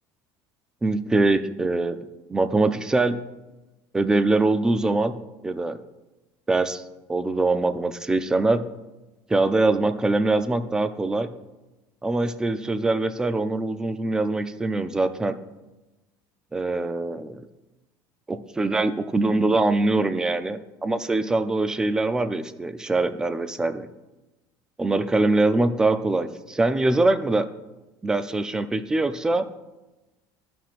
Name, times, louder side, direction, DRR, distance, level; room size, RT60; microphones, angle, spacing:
voice 1, 0.8-2.0 2.3-3.2 3.9-5.2 5.4-5.8 6.5-6.8 7.1-8.6 9.3-11.3 12.0-15.3 16.5-17.4 18.3-23.9 24.8-27.5 28.0-29.5, right 2 dB, 10° right, 11 dB, 0.4 m, -23 dB
15.0 x 5.8 x 2.5 m, 1.1 s
cardioid pair, 170°, 8 cm